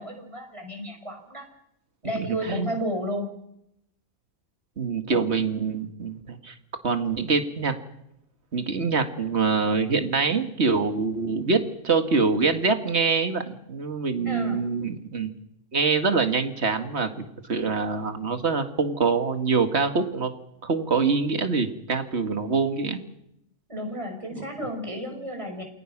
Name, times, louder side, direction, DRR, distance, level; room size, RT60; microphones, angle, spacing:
voice 1, 0.0-1.5 2.0-3.3 5.1-5.3 14.2-14.6 23.7-25.6, equal, 20° right, 3 dB, 5.9 m, -32 dB
voice 2, 2.2-2.7 4.8-6.5 6.8-7.7 8.5-15.3 15.7-17.1 17.5-20.3 20.6-23.0 24.4-24.5, right 4 dB, 50° right, 7 dB, 2.1 m, -25 dB
28.0 x 21.0 x 6.1 m, 0.80 s
omnidirectional pair, 1.5 m